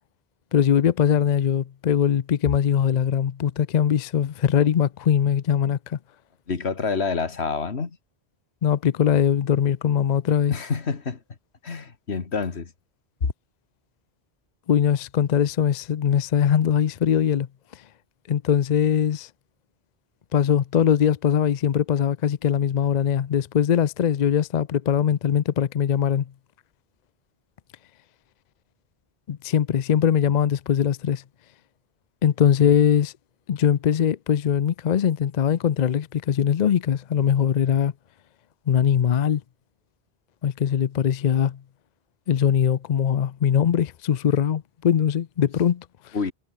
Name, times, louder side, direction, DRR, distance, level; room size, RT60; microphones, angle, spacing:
voice 1, 0.5-6.0 8.6-10.5 14.7-17.5 18.3-19.3 20.3-26.3 29.3-31.2 32.2-33.1 33.5-37.9 38.7-39.4 40.4-41.6 42.3-46.2, left 8 dB, 50° left, 0.6 m, -21 dB
voice 2, 6.5-7.9 10.5-11.2 11.6-12.7 13.2-13.3 46.1-46.3, left 5 dB, 80° left, 2.0 m, -27 dB
omnidirectional pair, 1.1 m